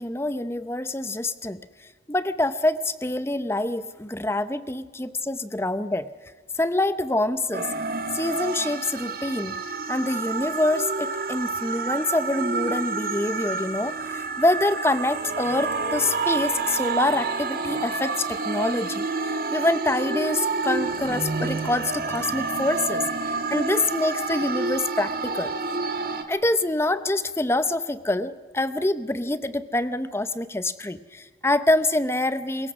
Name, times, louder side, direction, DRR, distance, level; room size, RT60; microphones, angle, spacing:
voice 1, 0.0-1.6 2.1-6.1 6.5-7.7 8.1-9.6 9.9-19.0 19.5-25.5 26.3-32.7, left 2 dB, 15° left, 13 dB, 0.7 m, -26 dB
sound 1, 7.5-26.2, right 4 dB, 50° right, 1.7 m, -29 dB
23.5 x 21.5 x 6.1 m, 1.4 s
head